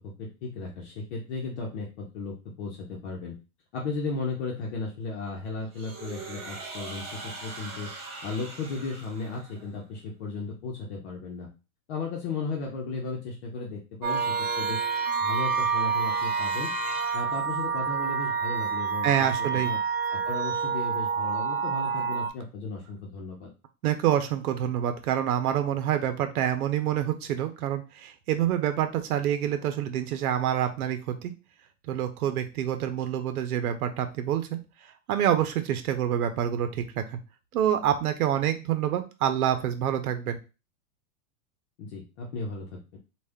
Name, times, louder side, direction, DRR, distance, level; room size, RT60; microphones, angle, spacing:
voice 1, 0.0-3.4 3.7-7.9 8.2-11.5 11.9-14.8 15.2-19.3 19.5-19.8 20.1-23.5 41.8-43.0, left 3 dB, 50° left, -1 dB, 0.9 m, -35 dB
sound 1, 5.7-9.8, right 3 dB, 20° right, 0.4 m, -41 dB
sound 2, 14.0-22.3, right 6 dB, 45° right, 0.7 m, -28 dB
voice 2, 19.0-19.7 23.8-31.3 31.9-34.6 35.1-37.2 37.5-40.4, right 10 dB, 80° right, 8 dB, 0.8 m, -27 dB
3.3 x 2.5 x 3.5 m, 0.30 s
supercardioid pair, 155°, 43 cm